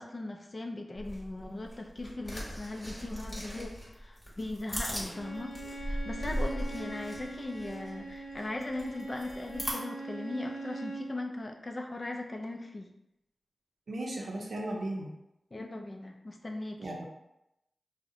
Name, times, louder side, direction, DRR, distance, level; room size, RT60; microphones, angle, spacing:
voice 1, 0.0-12.9 15.5-16.9, left 2 dB, 45° left, 3 dB, 0.3 m, -39 dB
sound 1, 0.9-9.7, equal, 30° left, 1.0 m, -39 dB
Bowed string instrument, 5.0-11.1, right 2 dB, 75° left, 0.7 m, -42 dB
voice 2, 13.9-15.1 16.8-17.0, right 1 dB, 80° right, 0 dB, 0.5 m, -36 dB
2.6 x 2.1 x 2.5 m, 0.86 s
cardioid pair, 50°, 0 cm